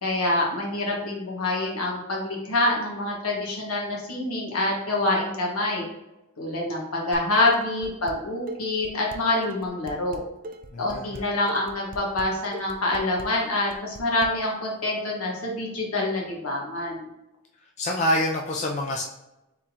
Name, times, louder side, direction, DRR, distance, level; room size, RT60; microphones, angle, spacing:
voice 1, 0.0-5.8 6.4-10.2 10.8-17.0, left 2 dB, 75° left, -2 dB, 1.4 m, -26 dB
Dishes pots and pans, 7.1-8.2 8.5-14.3, right 1 dB, 40° right, 0.4 m, -40 dB
voice 2, 10.7-11.3 17.8-19.0, left 1 dB, 35° left, 0 dB, 0.4 m, -26 dB
4.3 x 3.6 x 2.8 m, 0.94 s
head